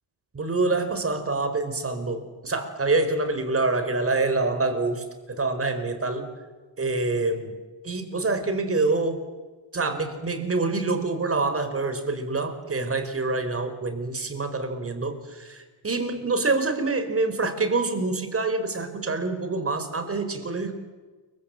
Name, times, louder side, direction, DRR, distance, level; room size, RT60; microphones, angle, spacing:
voice 1, 0.3-6.3 6.8-7.6 7.8-9.2 9.7-20.7, right 3 dB, 30° right, 9 dB, 4.7 m, -26 dB
29.0 x 24.5 x 7.9 m, 1.3 s
cardioid pair, 110°, 47 cm